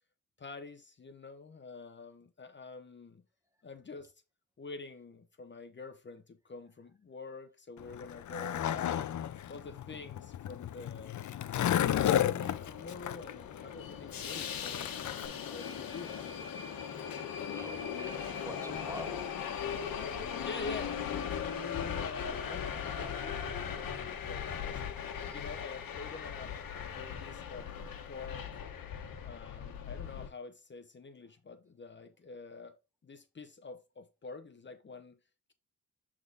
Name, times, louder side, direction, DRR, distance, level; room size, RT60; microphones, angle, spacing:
voice 1, 0.4-3.2 3.6-4.1 4.6-9.1 9.5-11.2 11.8-15.0 15.5-16.3 20.4-24.8 25.3-26.5 26.8-27.7 28.0-28.6 29.2-32.8 33.0-35.2, left 4 dB, 35° left, 0.8 m, -47 dB
Skateboard, 7.8-15.3, left 11 dB, 60° left, 0.5 m, -33 dB
Subway metro underground, 12.4-30.3, left 7 dB, 85° left, 1.2 m, -39 dB
voice 2, 17.5-19.6 25.2-25.4, equal, 10° right, 0.9 m, -47 dB
7.8 x 3.6 x 3.9 m
wide cardioid pair, 115°, 34 cm